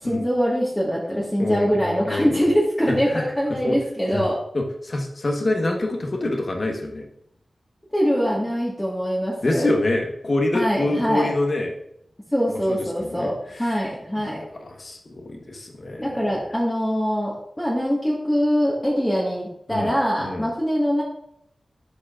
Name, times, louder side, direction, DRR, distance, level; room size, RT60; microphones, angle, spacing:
voice 1, 0.0-4.3 7.9-9.7 10.5-11.3 12.3-14.4 16.0-21.0, equal, 10° left, -5 dB, 1.5 m, -23 dB
voice 2, 1.4-2.5 2.9-3.3 3.6-3.8 4.1-4.2 4.5-7.1 9.4-11.7 12.7-13.9 14.2-16.3 19.7-20.5, left 2 dB, 50° left, 3 dB, 1.2 m, -26 dB
12.0 x 4.9 x 2.4 m, 0.73 s
wide cardioid pair, 75°, 0 cm